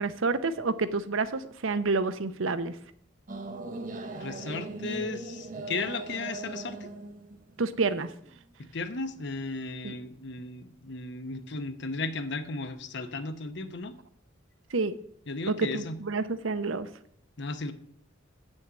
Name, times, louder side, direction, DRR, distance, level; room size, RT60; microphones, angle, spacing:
voice 1, 0.0-2.7 7.6-8.1 9.8-10.0 14.7-14.9 15.5-16.9, right 3 dB, 80° right, 12 dB, 0.7 m, -29 dB
sound 1, 3.3-8.4, right 3 dB, 40° right, 0.7 m, -39 dB
voice 2, 4.1-6.9 8.6-14.0 15.3-16.0 17.4-17.7, left 3 dB, 60° left, 10 dB, 0.8 m, -35 dB
8.2 x 6.3 x 7.4 m, 0.66 s
head